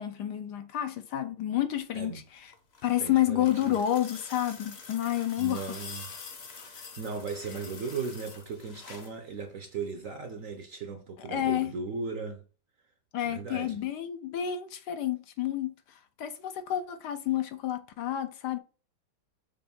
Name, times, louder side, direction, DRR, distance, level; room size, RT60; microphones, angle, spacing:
voice 1, 0.0-2.5 2.8-5.8 11.3-11.7 13.1-15.7 16.2-18.6, left 12 dB, 70° left, 1.2 m, -30 dB
sound 1, 2.4-9.2 10.5-10.6, left 5 dB, 45° left, 1.0 m, -46 dB
voice 2, 3.0-3.8 5.4-6.1 6.7-12.4 13.2-13.8, right 4 dB, 60° right, 0.9 m, -37 dB
6.9 x 2.6 x 5.2 m
omnidirectional pair, 2.0 m